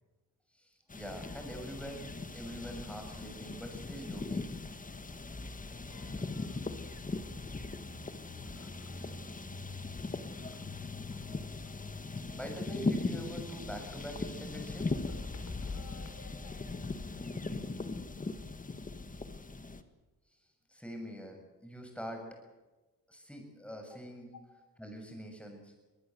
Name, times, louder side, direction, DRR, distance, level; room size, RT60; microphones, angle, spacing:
voice 1, 0.5-4.5 7.6-7.7 8.0-8.6 11.7-12.1 12.4-14.9 20.7-22.2 23.1-24.3 24.8-25.7, equal, 5° left, 3 dB, 7.1 m, -45 dB
sound 1, 0.9-19.8, left 3 dB, 20° left, 1.6 m, -39 dB
voice 2, 5.9-6.7 7.3-7.4 8.4-9.0 9.6-11.4 11.6-12.2 15.0-17.0 24.3-24.4, left 5 dB, 50° left, 6 dB, 5.7 m, -57 dB
24.0 x 19.0 x 7.9 m, 1.2 s
cardioid pair, 95°, 37 cm